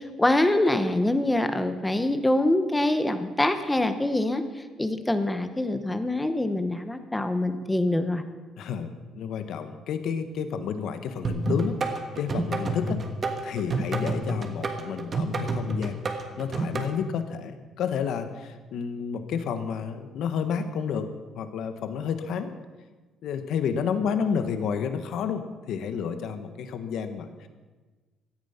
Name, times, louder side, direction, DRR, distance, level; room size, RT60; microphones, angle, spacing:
voice 1, 0.0-4.4 4.8-8.2, left 1 dB, 5° left, 9 dB, 0.9 m, -24 dB
voice 2, 8.6-13.0 13.4-21.1 21.3-22.5 23.2-27.5, left 7 dB, 55° left, 9 dB, 1.3 m, -30 dB
sound 1, 11.2-16.9, right 2 dB, 25° right, 1.5 m, -29 dB
16.5 x 13.5 x 5.7 m, 1.3 s
cardioid pair, 175°, 0 cm